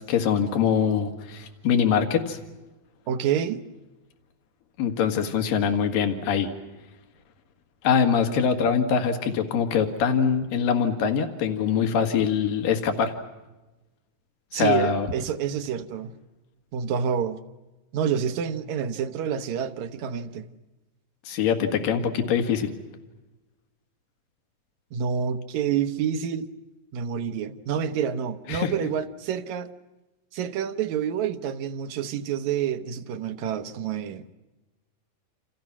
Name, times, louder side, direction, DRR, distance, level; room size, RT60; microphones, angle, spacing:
voice 1, 0.0-2.4 4.8-6.5 7.8-13.1 14.5-15.1 21.3-22.7 28.5-28.7, left 7 dB, 75° left, 3.6 m, -23 dB
voice 2, 3.1-3.6 14.5-16.1 16.7-17.4 17.9-20.5 24.9-26.5 26.9-29.7 30.3-34.4, right 8 dB, 65° right, 2.2 m, -28 dB
29.0 x 28.0 x 6.1 m
omnidirectional pair, 4.0 m